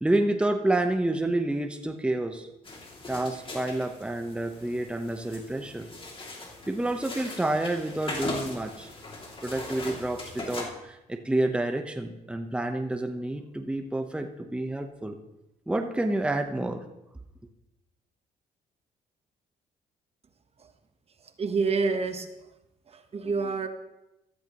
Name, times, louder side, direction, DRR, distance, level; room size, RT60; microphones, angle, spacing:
voice 1, 0.0-2.5 3.1-5.9 6.7-8.9 9.4-15.2 15.7-16.8, right 1 dB, 5° right, 5 dB, 1.0 m, -29 dB
sound 1, 2.7-10.6, left 2 dB, 35° left, 2.6 m, -40 dB
voice 2, 21.2-22.3 22.9-23.7, right 4 dB, 40° right, 8 dB, 1.1 m, -28 dB
14.5 x 13.5 x 3.1 m, 0.94 s
cardioid pair, 90°, 16 cm